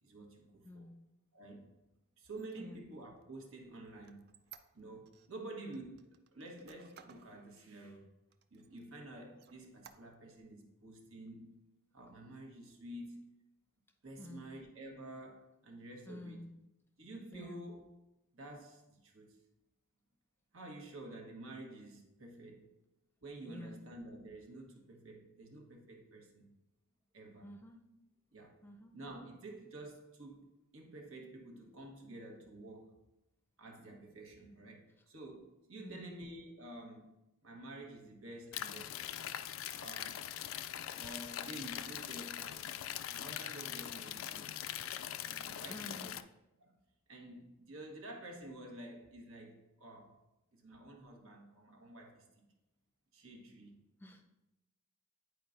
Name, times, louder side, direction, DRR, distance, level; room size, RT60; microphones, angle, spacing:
voice 1, 0.0-0.9 1.3-1.7 2.2-4.3 4.7-8.1 8.5-11.7 11.9-13.3 14.0-16.4 17.0-17.8 18.3-19.4 20.5-22.7 23.2-26.5 27.1-27.5 28.3-28.6 28.9-33.0 33.6-39.2 39.8-40.2 40.9-42.8 43.1-44.7 45.2-46.1 46.6-46.8 47.1-50.2 50.5-52.4 53.1-53.8, right 1 dB, 85° right, 1.2 m, -50 dB
voice 2, 0.6-1.0 2.6-2.8 14.2-14.5 16.1-16.5 17.3-17.6 23.4-23.8 27.4-27.8 28.6-28.9 35.8-36.2 45.7-46.1 54.0-54.2, left 1 dB, 10° left, 0.6 m, -50 dB
Squeak, 2.3-5.3 5.7-7.3 7.8-7.9 8.3-9.0 9.4-10.4, right 8 dB, 50° right, 0.4 m, -59 dB
sound 1, 38.5-46.2, left 11 dB, 75° left, 0.3 m, -42 dB
9.8 x 4.5 x 2.6 m
head